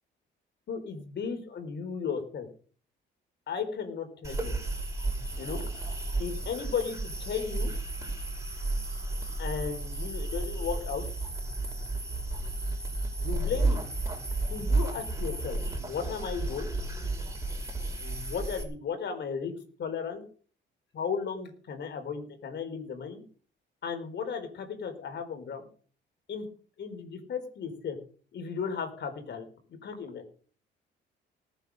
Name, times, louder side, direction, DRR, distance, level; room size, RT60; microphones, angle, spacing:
voice 1, 0.7-2.5 3.5-4.5 5.4-5.6 6.2-7.7 9.4-11.0 13.2-13.8 14.5-16.7 18.0-19.5 19.8-20.2 20.9-23.2 23.8-25.6 26.3-26.4 26.8-28.0 28.3-29.5 29.8-30.2, left 6 dB, 60° left, 8 dB, 4.5 m, -35 dB
sound 1, 4.2-18.6, right 2 dB, 15° right, 5.6 m, -32 dB
18.5 x 9.3 x 6.6 m, 0.43 s
cardioid pair, 90°, 20 cm